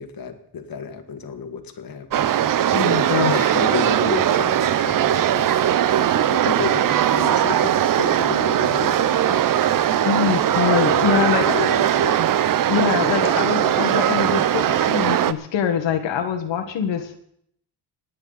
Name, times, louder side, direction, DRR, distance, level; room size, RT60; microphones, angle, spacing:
voice 1, 0.0-2.3 3.2-5.5 6.3-9.9 10.8-12.3, left 6 dB, 50° left, 7 dB, 1.7 m, -31 dB
sound 1, 2.1-15.3, right 10 dB, 50° right, 0.6 m, -19 dB
voice 2, 2.7-3.5 10.0-11.5 12.7-17.2, left 8 dB, 85° left, 6 dB, 1.5 m, -24 dB
26.0 x 9.6 x 4.0 m, 0.69 s
cardioid pair, 145°, 43 cm